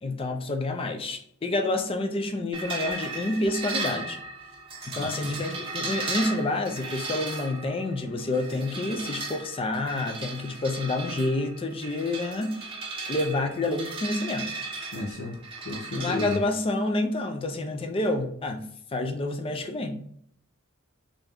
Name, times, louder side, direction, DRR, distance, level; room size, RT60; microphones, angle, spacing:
voice 1, 0.0-4.2 4.9-12.7 13.1-14.5 16.0-18.6 18.9-20.0, left 2 dB, 25° left, 5 dB, 0.4 m, -28 dB
sound 1, 2.5-16.4, right 3 dB, 25° right, 0.8 m, -36 dB
voice 2, 14.9-15.4 15.6-16.4, left 2 dB, 85° left, -3 dB, 0.7 m, -32 dB
3.4 x 2.6 x 3.4 m, 0.67 s
head